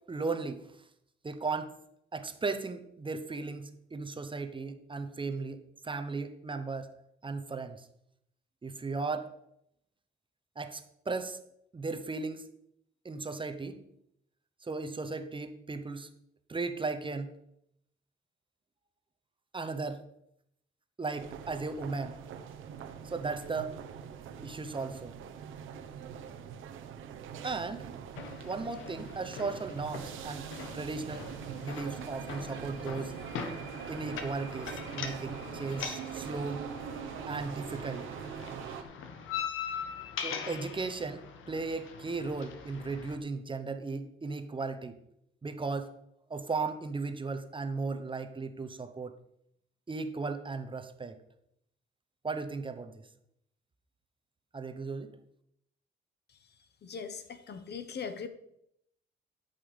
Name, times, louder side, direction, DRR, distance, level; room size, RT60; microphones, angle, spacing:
voice 1, 0.1-0.6 1.2-1.7 2.1-6.9 7.2-7.9 8.6-9.3 10.6-11.4 11.7-12.4 13.0-13.8 14.6-16.1 16.5-17.3 19.5-20.0 21.0-22.2 23.0-23.7 24.4-25.1 27.4-27.9 28.4-33.2 33.9-36.6 37.3-38.2 40.2-45.0 45.4-45.9 46.3-49.2 49.9-51.2 52.2-53.0 54.5-55.1, right 4 dB, 25° right, 9 dB, 1.1 m, -36 dB
sound 1, 21.2-38.8, right 7 dB, 85° right, 1.0 m, -43 dB
sound 2, 28.2-43.2, left 7 dB, 85° left, 1.3 m, -42 dB
voice 2, 56.8-58.3, left 6 dB, 55° left, 10 dB, 1.2 m, -40 dB
12.5 x 5.6 x 5.3 m, 0.75 s
cardioid pair, 90°, 20 cm